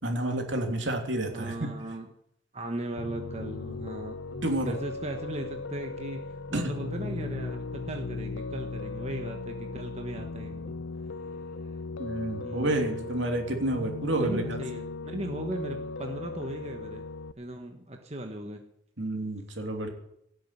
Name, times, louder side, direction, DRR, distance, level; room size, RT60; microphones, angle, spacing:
voice 1, 0.0-1.5 4.4-4.7 6.5-6.7 12.0-14.6 19.0-19.9, right 1 dB, 75° right, 3 dB, 3.0 m, -29 dB
voice 2, 1.3-2.1 2.5-6.2 6.5-10.8 12.4-13.1 14.2-17.1 17.4-18.7, right 1 dB, 35° right, 3 dB, 1.3 m, -38 dB
Piano, 3.0-17.3, left 3 dB, 90° left, 0.6 m, -37 dB
17.5 x 7.7 x 9.8 m, 0.76 s
head